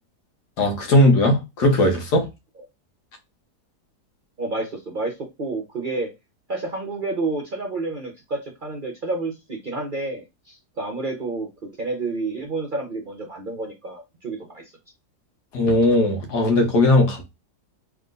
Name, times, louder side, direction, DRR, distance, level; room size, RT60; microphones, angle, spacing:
voice 1, 0.6-2.3 15.5-17.2, left 1 dB, 85° left, 1.6 m, -18 dB
voice 2, 4.4-6.1 6.5-14.7, right 3 dB, 50° right, 0.6 m, -30 dB
3.5 x 3.0 x 3.8 m
omnidirectional pair, 1.7 m